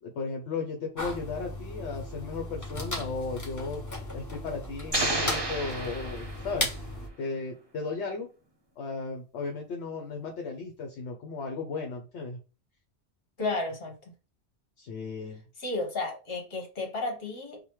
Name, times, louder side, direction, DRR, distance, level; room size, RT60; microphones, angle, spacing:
voice 1, 0.0-3.8 4.1-6.7 7.2-8.3 8.8-12.4 14.8-15.4, left 4 dB, 75° left, 1.0 m, -35 dB
sound 1, 1.0-7.1, left 1 dB, 20° left, 0.7 m, -36 dB
sound 2, 4.9-6.8, right 2 dB, 25° right, 0.7 m, -31 dB
voice 2, 13.4-14.1 15.6-17.6, left 2 dB, 60° left, 1.4 m, -33 dB
5.0 x 2.2 x 3.0 m
omnidirectional pair, 1.2 m